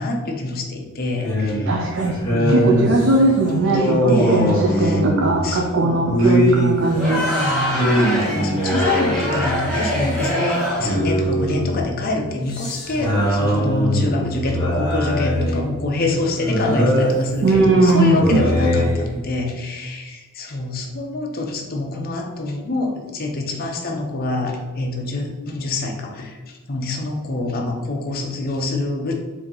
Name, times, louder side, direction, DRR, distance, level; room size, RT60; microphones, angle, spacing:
voice 1, 0.0-1.7 2.3-3.0 3.7-5.0 5.4-6.4 7.3-29.1, left 2 dB, 45° left, 2 dB, 0.6 m, -26 dB
sound 1, 1.2-10.3 10.6-19.2, equal, 20° left, 1.0 m, -22 dB
voice 2, 1.7-2.2 2.5-7.2 17.4-18.4, right 2 dB, 55° right, 0 dB, 0.4 m, -18 dB
Crowd, 6.9-11.0, equal, 5° left, 1.3 m, -24 dB
4.3 x 2.7 x 3.8 m, 1.3 s
head